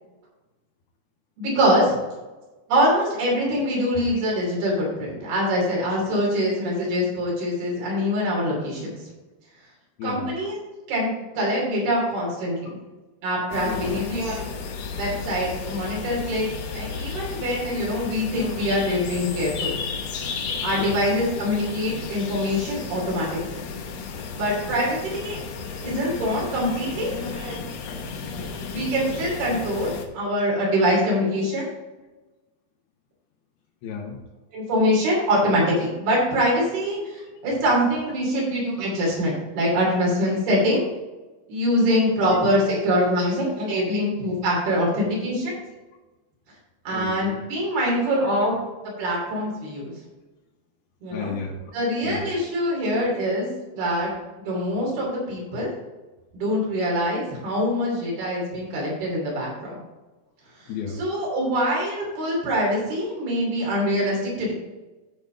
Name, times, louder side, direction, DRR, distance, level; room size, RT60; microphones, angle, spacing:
voice 1, 1.4-2.0 2.7-9.0 10.0-10.6 10.9-12.8 13.2-14.5 14.9-16.5 16.7-19.7 20.6-23.6 24.4-25.4 25.8-27.6 28.7-31.7 34.5-37.0 37.4-40.9 41.5-45.5 46.8-48.5 49.0-49.9 51.0-51.3 51.7-53.5 53.7-54.1 54.4-55.7 56.3-59.8 61.0-64.5, equal, 85° right, -3 dB, 4.9 m, -24 dB
voice 2, 10.0-10.3 11.4-11.5 12.6-12.8 13.6-13.9 20.8-21.1 26.8-27.2 33.8-34.2 37.3-37.5 38.6-38.7 42.0-42.4 43.3-43.4 43.8-43.9 46.9-47.5 48.2-48.4 49.4-49.6 51.1-51.7 52.0-52.5 60.7-61.0 64.0-64.1 64.4-64.5, left 6 dB, 80° left, -3 dB, 3.1 m, -35 dB
sound 1, 13.5-30.1, left 5 dB, 65° left, 1.7 m, -33 dB
14.0 x 5.2 x 3.8 m, 1.1 s
omnidirectional pair, 4.3 m